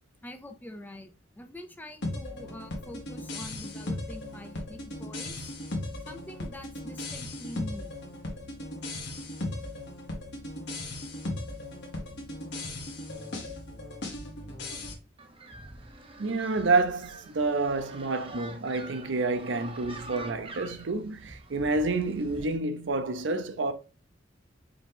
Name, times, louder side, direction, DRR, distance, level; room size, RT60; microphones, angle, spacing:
voice 1, 0.2-5.5 6.1-7.9, left 1 dB, 10° left, 0.6 m, -45 dB
sound 1, 2.0-14.9, left 1 dB, 65° left, 1.5 m, -37 dB
sound 2, 15.2-22.6, right 2 dB, 30° right, 0.7 m, -46 dB
voice 2, 16.2-23.7, right 3 dB, 70° right, 0.6 m, -28 dB
4.9 x 3.0 x 3.6 m
head